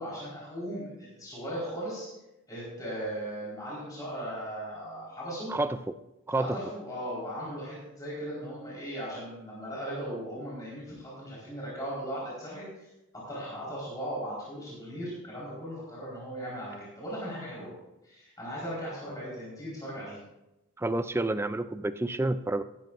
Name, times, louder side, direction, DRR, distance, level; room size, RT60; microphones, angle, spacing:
voice 1, 0.0-2.1 2.5-5.5 6.3-12.9 13.1-17.7 18.0-20.2, equal, 15° left, -7 dB, 4.2 m, -38 dB
voice 2, 5.5-5.9 6.3-6.6 20.8-22.6, right 2 dB, 10° right, 12 dB, 0.3 m, -29 dB
15.0 x 13.0 x 2.5 m, 0.97 s
head